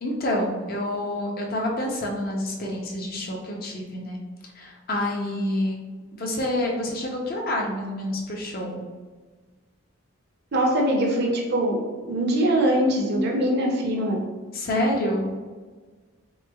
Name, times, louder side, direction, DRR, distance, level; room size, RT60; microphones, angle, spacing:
voice 1, 0.0-4.2 4.6-5.8 6.1-8.8 14.5-15.4, left 1 dB, 45° left, -1 dB, 0.5 m, -28 dB
voice 2, 10.5-14.2, right 1 dB, 50° right, 0 dB, 0.6 m, -22 dB
3.3 x 3.1 x 2.2 m, 1.4 s
head